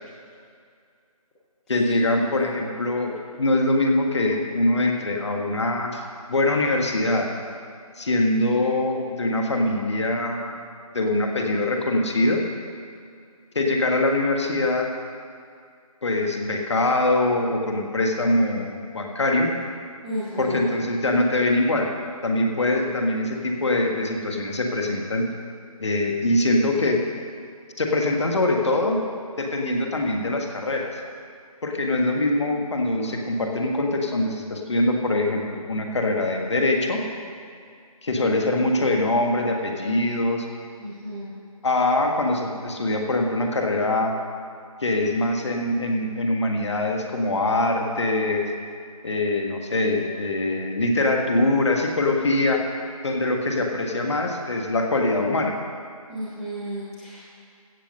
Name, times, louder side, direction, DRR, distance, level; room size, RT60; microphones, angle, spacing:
voice 1, 1.7-6.0 6.3-7.3 8.0-10.6 10.9-12.4 13.5-14.9 16.0-19.5 20.4-21.9 22.2-25.3 25.8-27.0 27.8-29.0 29.4-31.0 31.6-37.0 38.0-40.4 41.6-44.2 44.8-48.5 49.0-52.6 53.0-55.5, left 2 dB, 50° left, 2 dB, 1.5 m, -23 dB
voice 2, 20.0-20.6 40.8-41.3 56.1-57.2, equal, ahead, -15 dB, 0.6 m, -33 dB
16.0 x 6.9 x 5.3 m, 2.3 s
figure-of-eight pair, 165°, 19 cm